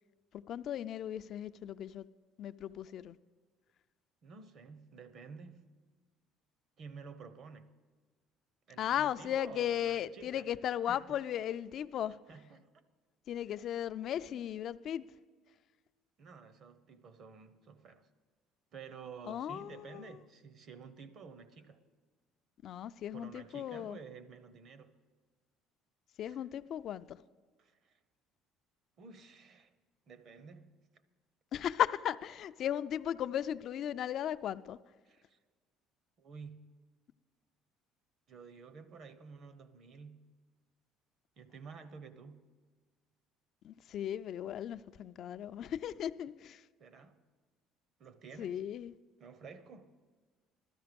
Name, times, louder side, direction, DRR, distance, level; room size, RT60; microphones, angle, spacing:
voice 1, 0.5-2.1 2.4-3.2 8.8-12.2 13.3-15.0 19.3-20.0 22.6-24.0 26.2-27.2 31.5-34.8 43.6-46.6 48.4-48.9, left 10 dB, 50° left, 0.3 m, -36 dB
voice 2, 4.2-5.7 6.8-7.7 8.7-10.5 10.9-11.2 12.3-12.7 16.2-18.1 18.7-21.8 23.1-24.9 26.3-26.4 27.6-28.0 29.0-29.7 30.1-30.7 35.1-35.4 36.2-36.7 38.3-40.3 41.4-42.5 46.8-47.2 48.0-48.6 49.2-49.9, right 5 dB, 50° right, 0.9 m, -51 dB
16.0 x 13.0 x 5.2 m
cardioid pair, 125°, 0 cm